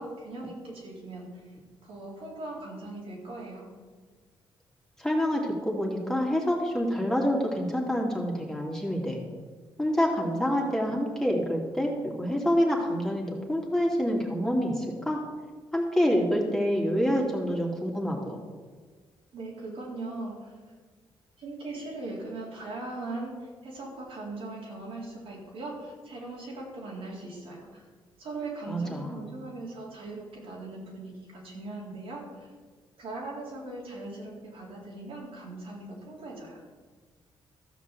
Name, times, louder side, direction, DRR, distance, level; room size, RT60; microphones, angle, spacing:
voice 1, 0.0-1.6 1.8-3.7 19.3-20.6 21.4-27.8 28.2-32.5 33.0-36.6, right 2 dB, 75° right, -3 dB, 4.1 m, -39 dB
voice 2, 5.0-9.2 9.8-15.2 15.7-18.4 28.7-29.2, equal, 5° left, -2 dB, 2.8 m, -27 dB
14.0 x 6.1 x 7.6 m, 1.5 s
cardioid pair, 85°, 10 cm